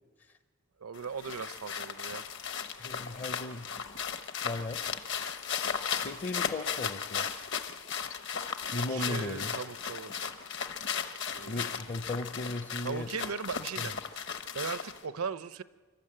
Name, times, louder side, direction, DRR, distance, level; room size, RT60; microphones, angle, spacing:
voice 1, 0.8-2.3 8.9-10.3 11.3-11.7 12.8-15.6, right 5 dB, 80° right, 14 dB, 0.7 m, -38 dB
sound 1, 1.0-15.1, left 7 dB, 55° left, 0.9 m, -36 dB
sound 2, 2.1-4.1 4.5-11.1 11.5-12.8 13.2-13.5, left 5 dB, 70° left, 5.5 m, -60 dB
voice 2, 2.8-3.7 4.4-5.0 5.9-7.3 8.7-9.5 11.4-13.1 13.8-13.9, left 2 dB, 35° left, 8 dB, 0.6 m, -37 dB
28.5 x 12.5 x 8.8 m, 1.4 s
head